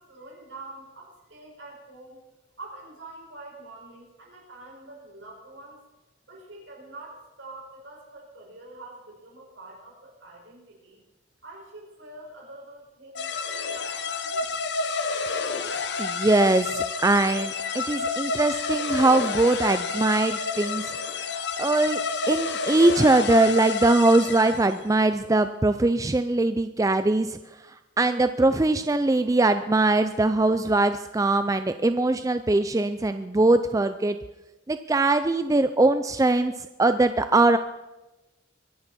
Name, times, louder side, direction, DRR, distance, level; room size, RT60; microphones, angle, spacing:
voice 1, 0.0-2.2 2.6-5.8 6.3-11.0 11.4-14.5, right 2 dB, 70° right, -2 dB, 5.4 m, -45 dB
sound 1, 13.2-24.8, left 4 dB, 60° left, 1.0 m, -29 dB
voice 2, 16.0-20.9 21.6-22.0 22.3-27.4 28.0-34.2 34.7-37.6, right 2 dB, 15° right, 10 dB, 0.4 m, -21 dB
23.0 x 10.5 x 4.3 m, 1.0 s
head